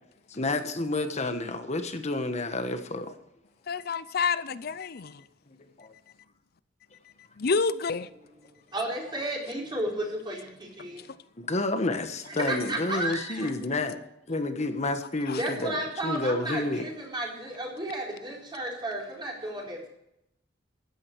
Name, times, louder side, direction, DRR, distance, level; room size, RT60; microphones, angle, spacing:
voice 1, 0.3-3.1 5.5-5.9 11.4-14.0 14.3-16.9, left 2 dB, 35° left, 1.3 m, -30 dB
voice 2, 3.7-5.2 7.4-8.1 15.3-15.4, left 4 dB, 55° left, 0.6 m, -28 dB
voice 3, 8.5-11.1 12.3-13.5 15.4-19.9, right 1 dB, 25° right, 4.3 m, -33 dB
14.5 x 10.0 x 4.7 m
head